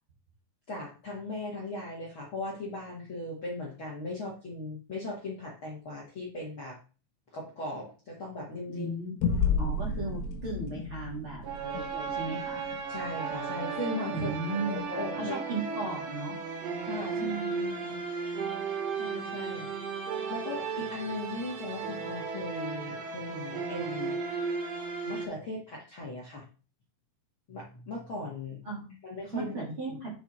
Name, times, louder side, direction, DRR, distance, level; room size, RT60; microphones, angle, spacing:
voice 1, 0.7-6.8 7.3-8.9 9.5-9.7 12.9-15.4 15.7-15.9 16.8-17.7 19.0-19.7 20.3-24.2 25.0-26.4 27.5-28.6 29.0-30.0, left 2 dB, 45° left, -4 dB, 1.8 m, -38 dB
voice 2, 8.7-9.2 9.6-12.6 14.1-14.8 15.2-16.4 17.1-18.0 28.6-28.9 29.3-30.1, right 3 dB, 40° right, -4 dB, 2.3 m, -36 dB
sound 1, 9.2-14.0, left 5 dB, 70° left, 3.1 m, -33 dB
sound 2, 11.4-25.2, right 5 dB, 70° right, 1.6 m, -35 dB
8.4 x 4.8 x 4.4 m, 0.35 s
omnidirectional pair, 4.9 m